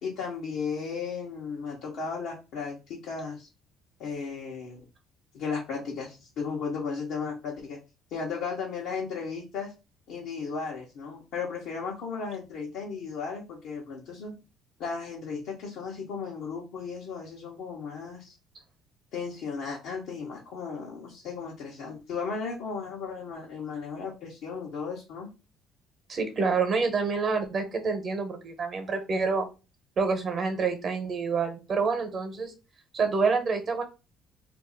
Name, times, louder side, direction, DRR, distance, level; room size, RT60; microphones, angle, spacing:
voice 1, 0.0-3.5 4.0-4.8 5.3-7.8 8.1-9.7 10.1-14.3 14.8-18.3 19.1-25.3, left 5 dB, 70° left, -3 dB, 0.9 m, -35 dB
voice 2, 26.1-29.5 30.0-32.5 32.9-33.8, right 4 dB, 45° right, 7 dB, 1.0 m, -27 dB
2.6 x 2.1 x 3.9 m, 0.29 s
hypercardioid pair, 65°, 0 cm